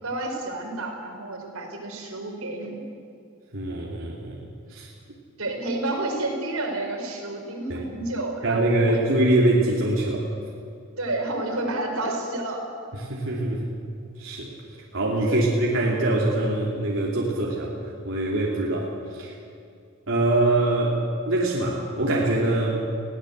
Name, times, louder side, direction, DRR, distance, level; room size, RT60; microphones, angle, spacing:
voice 1, 0.0-2.8 5.4-9.0 11.0-12.6 15.3-15.5, right 2 dB, 85° right, 2 dB, 4.6 m, -30 dB
voice 2, 3.5-4.9 7.7-7.8 8.4-10.3 12.9-13.7 14.2-14.5 14.9-17.7 18.0-19.4 20.1-21.0 21.3-22.9, right 2 dB, 60° right, -3 dB, 2.9 m, -24 dB
22.0 x 16.5 x 8.1 m, 2.5 s
head